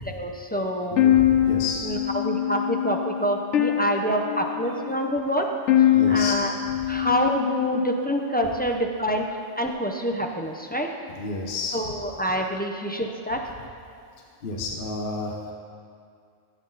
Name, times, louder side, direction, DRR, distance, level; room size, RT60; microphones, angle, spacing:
voice 1, 0.1-1.0 1.8-5.5 6.1-6.5 6.9-9.3 9.6-10.9 11.7-13.4, equal, 15° left, 2 dB, 0.4 m, -26 dB
voice 2, 0.9-1.9 4.7-4.8 5.9-6.8 11.1-11.9 14.4-15.5, left 3 dB, 50° left, 1 dB, 1.0 m, -31 dB
sound 1, 1.0-8.1, left 11 dB, 70° left, 1.0 m, -23 dB
14.5 x 8.2 x 4.0 m, 2.4 s
omnidirectional pair, 1.3 m